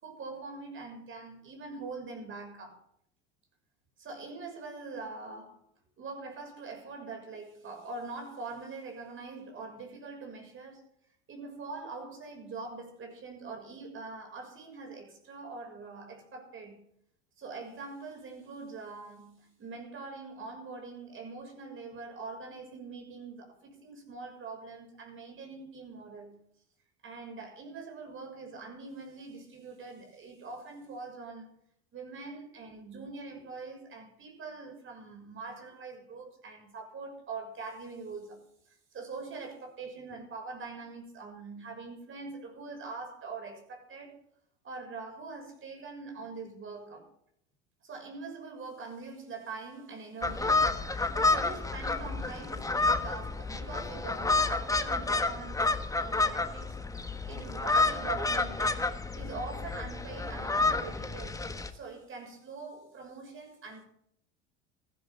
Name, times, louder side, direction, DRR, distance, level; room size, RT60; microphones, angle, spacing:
voice 1, 0.0-2.8 4.0-5.6 6.0-10.8 11.3-16.9 17.4-26.4 27.0-31.5 31.9-44.2 44.6-47.1 47.8-56.8 57.0-63.8, right 4 dB, 40° right, 6.6 m, -43 dB
sound 1, 50.2-61.7, left 3 dB, 10° left, 1.4 m, -30 dB
15.5 x 15.0 x 3.8 m
hypercardioid pair, 85°, 33 cm